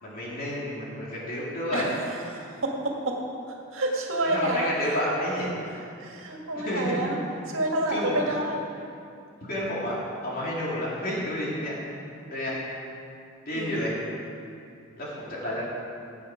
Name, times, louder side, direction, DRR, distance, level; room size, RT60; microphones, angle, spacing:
voice 1, 0.0-2.0 4.2-5.6 6.6-7.1 7.9-8.2 9.5-10.0 10.2-11.8 12.3-12.6 13.5-14.0 15.0-15.6, equal, 45° left, -6 dB, 3.3 m, -30 dB
voice 2, 2.3-3.2 3.7-5.0 6.0-7.2 7.5-8.6 13.5-13.9, right 1 dB, 70° right, 0 dB, 2.0 m, -29 dB
16.5 x 8.4 x 5.2 m, 2.5 s
head